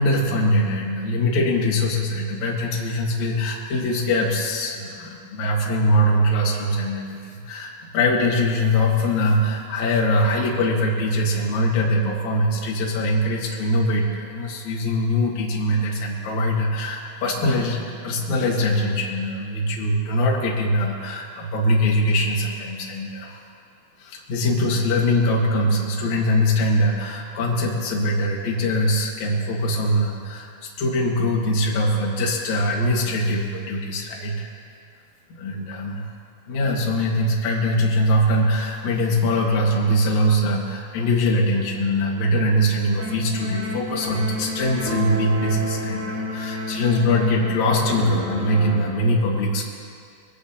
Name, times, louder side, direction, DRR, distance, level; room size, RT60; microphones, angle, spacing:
voice 1, 0.0-23.4 24.0-34.5 35.3-36.1 36.5-49.7, left 1 dB, 50° left, -3 dB, 2.7 m, -22 dB
sound 1, 43.0-48.9, left 1 dB, 70° right, 4.2 m, -30 dB
21.5 x 17.5 x 2.9 m, 2.3 s
omnidirectional pair, 4.9 m